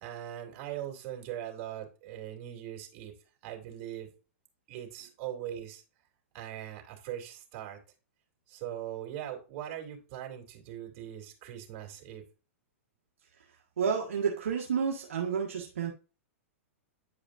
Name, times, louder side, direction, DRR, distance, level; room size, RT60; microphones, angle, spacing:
voice 1, 0.0-3.1 3.4-4.1 4.7-5.8 6.3-7.8 8.5-12.2, right 11 dB, 45° right, 2.7 m, -40 dB
voice 2, 13.8-15.9, right 6 dB, 75° right, 1.4 m, -30 dB
9.5 x 4.9 x 2.5 m
hypercardioid pair, 110°, 7 cm